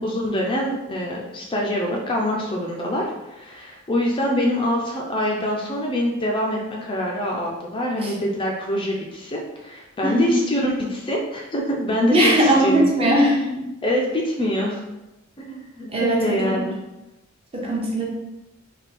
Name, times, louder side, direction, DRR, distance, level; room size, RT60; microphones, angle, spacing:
voice 1, 0.0-12.9 13.8-14.8 15.4-16.8, left 1 dB, 25° left, -1 dB, 0.5 m, -25 dB
voice 2, 10.0-10.3 12.1-13.5 15.9-16.5 17.5-18.0, right 1 dB, 30° right, -3 dB, 0.8 m, -19 dB
3.5 x 2.3 x 4.1 m, 0.98 s
head